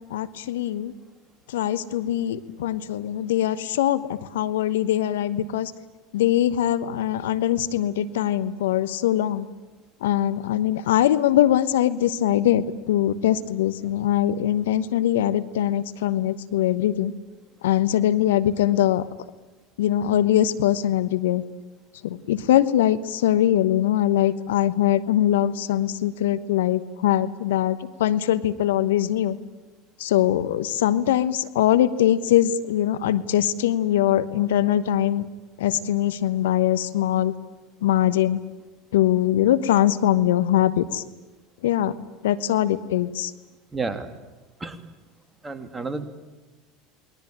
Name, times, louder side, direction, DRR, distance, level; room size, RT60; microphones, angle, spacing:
voice 1, 0.1-0.9 1.5-5.7 6.1-9.5 10.0-17.1 17.6-19.0 19.8-21.4 22.0-29.4 30.0-35.3 35.6-37.3 37.8-38.4 38.9-41.0 41.6-42.0 42.2-43.3, left 12 dB, 75° left, 13 dB, 1.1 m, -22 dB
voice 2, 43.7-44.1 44.6-44.8 45.4-46.1, right 4 dB, 15° right, 8 dB, 2.8 m, -30 dB
28.5 x 21.5 x 8.9 m, 1.2 s
hypercardioid pair, 80°, 0 cm